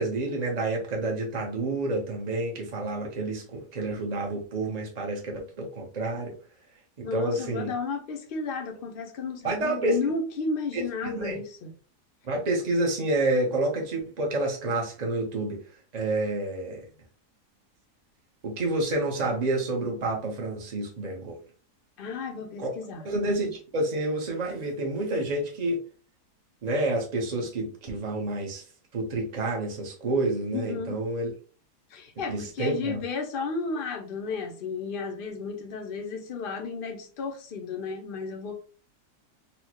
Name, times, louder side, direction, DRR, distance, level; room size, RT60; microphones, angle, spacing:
voice 1, 0.0-6.3 7.0-7.7 9.4-10.0 10.7-11.4 12.2-15.6 15.9-16.9 18.4-21.3 22.6-22.7 23.0-25.8 26.6-28.6 28.9-31.3 32.3-33.0, right 2 dB, 50° right, 0 dB, 0.4 m, -29 dB
voice 2, 7.0-11.7 22.0-23.1 30.5-31.0 31.9-38.6, left 4 dB, 75° left, 3 dB, 0.5 m, -33 dB
4.2 x 2.1 x 2.8 m, 0.39 s
omnidirectional pair, 1.7 m